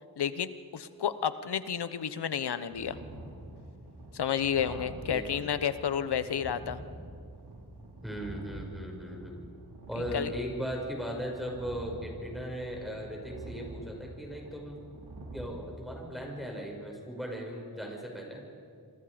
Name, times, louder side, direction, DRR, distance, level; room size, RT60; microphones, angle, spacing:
voice 1, 0.2-3.0 4.1-6.8 10.1-10.3, left 8 dB, 90° left, 13 dB, 1.0 m, -31 dB
sound 1, 2.7-15.5, right 1 dB, 85° right, 5.5 m, -46 dB
voice 2, 4.6-5.4 8.0-9.4 9.9-14.8 15.3-18.4, equal, ahead, -1 dB, 6.3 m, -38 dB
27.0 x 26.5 x 5.1 m, 2.3 s
cardioid pair, 65°, 39 cm